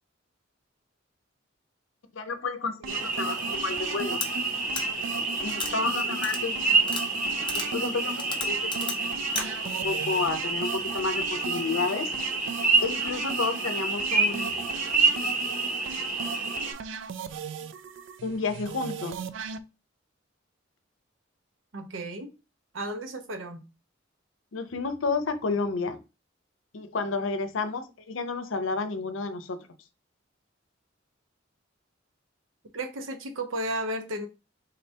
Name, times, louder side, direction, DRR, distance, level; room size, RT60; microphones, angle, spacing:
voice 1, 2.1-4.2 5.4-6.9 7.5-8.7 9.6-12.1 12.8-14.5 18.2-19.2 24.5-26.0 26.7-29.6, left 4 dB, 80° left, 0.6 m, -31 dB
sound 1, 2.8-19.6, right 6 dB, 70° right, 0.3 m, -38 dB
sound 2, 2.9-16.7, right 3 dB, 45° right, 0.8 m, -28 dB
sound 3, 4.2-4.3 4.7-4.8 5.5-5.7 6.2-6.4 6.8-7.0 7.5-7.7 8.2-9.0 9.3-9.4, left 6 dB, 25° left, 0.5 m, -33 dB
voice 2, 21.7-22.3 22.7-23.6 32.7-34.3, right 1 dB, 90° right, 0.8 m, -33 dB
4.0 x 3.2 x 2.8 m
head